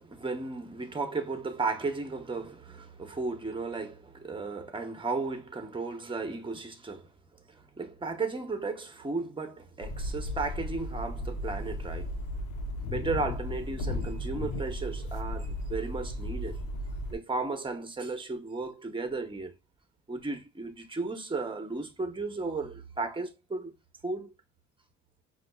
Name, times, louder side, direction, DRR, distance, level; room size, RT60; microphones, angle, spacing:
voice 1, 0.0-7.1 7.5-12.1 12.8-16.6 17.1-19.5 20.1-23.7 24.0-24.3, right 3 dB, 15° right, 0.8 m, -35 dB
Inside driving car in rain city stop n go, 9.8-17.2, left 1 dB, 80° left, 0.7 m, -35 dB
5.0 x 2.4 x 2.2 m
cardioid pair, 90°, 30 cm